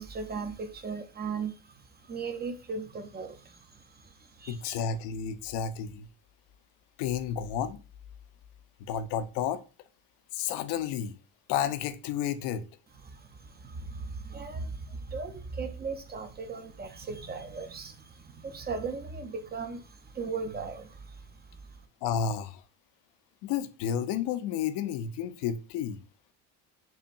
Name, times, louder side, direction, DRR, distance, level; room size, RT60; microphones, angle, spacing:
voice 1, 0.0-4.8 13.0-21.8, right 4 dB, 25° right, 0.5 m, -38 dB
voice 2, 4.5-6.1 7.0-7.8 8.9-9.6 10.3-11.1 11.5-12.7 22.0-22.6 23.4-26.0, left 8 dB, 70° left, 0.6 m, -31 dB
5.6 x 2.2 x 2.5 m
supercardioid pair, 90°, 43 cm